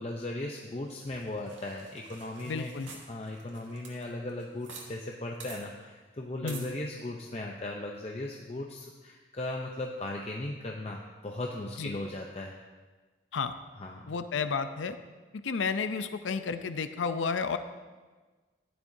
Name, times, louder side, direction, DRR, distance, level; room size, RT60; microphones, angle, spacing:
voice 1, 0.0-2.7 3.1-12.5 13.8-14.1, left 1 dB, 35° left, 0 dB, 0.6 m, -37 dB
sound 1, 0.9-4.9 5.1-5.2 5.4-5.6 6.5-6.7, right 5 dB, 85° right, 1.9 m, -48 dB
voice 2, 2.5-2.9 6.4-6.7 11.8-12.0 13.3-13.5 14.1-15.0 15.4-17.6, left 5 dB, 85° left, 10 dB, 0.5 m, -31 dB
14.0 x 10.5 x 2.7 m, 1.3 s
head